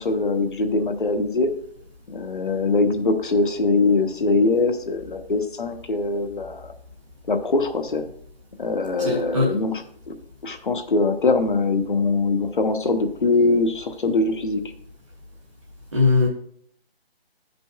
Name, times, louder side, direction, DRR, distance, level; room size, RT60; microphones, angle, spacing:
voice 1, 0.0-1.5 2.1-6.7 7.3-8.1 8.6-9.8 10.1-10.2 10.4-14.6, left 3 dB, 55° left, 7 dB, 0.9 m, -22 dB
voice 2, 9.0-9.5 15.9-16.3, left 3 dB, 30° right, -3 dB, 0.8 m, -20 dB
14.5 x 5.3 x 2.2 m, 0.65 s
hypercardioid pair, 175°, 30 cm